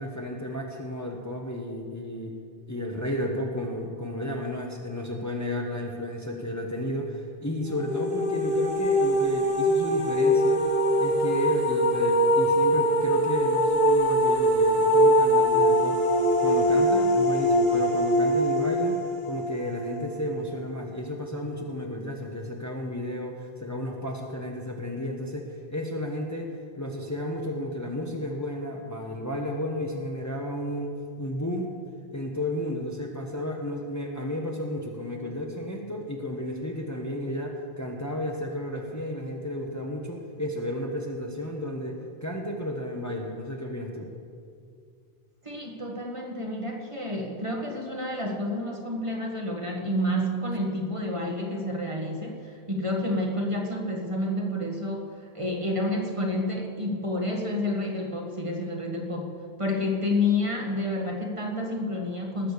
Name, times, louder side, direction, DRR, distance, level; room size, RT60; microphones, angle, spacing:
voice 1, 0.0-2.4 2.7-10.7 11.0-16.0 16.4-19.0 19.2-30.9 31.2-31.7 32.1-44.1, left 1 dB, 15° left, 1 dB, 1.2 m, -32 dB
sound 1, 7.7-20.6, equal, 70° left, 2.5 m, -23 dB
voice 2, 45.4-62.5, left 1 dB, 30° right, 0 dB, 1.7 m, -29 dB
19.0 x 7.7 x 6.8 m, 2.2 s
omnidirectional pair, 1.1 m